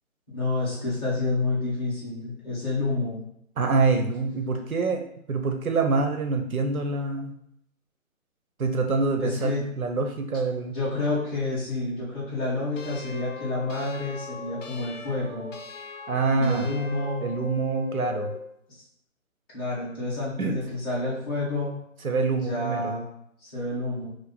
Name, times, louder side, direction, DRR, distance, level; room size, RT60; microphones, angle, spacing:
voice 1, 0.3-3.2 9.2-9.7 10.7-15.5 16.3-17.2 18.7-18.8 19.5-21.8 22.3-23.0 23.4-24.1, left 2 dB, 15° left, -11 dB, 1.6 m, -29 dB
voice 2, 3.6-7.3 8.6-10.7 16.1-16.7 17.2-18.3 20.4-20.6 22.0-23.0, right 4 dB, 90° right, 4 dB, 1.0 m, -26 dB
sound 1, 12.8-18.5, left 5 dB, 65° left, 0.7 m, -39 dB
5.1 x 2.1 x 4.2 m, 0.73 s
hypercardioid pair, 170°, 41 cm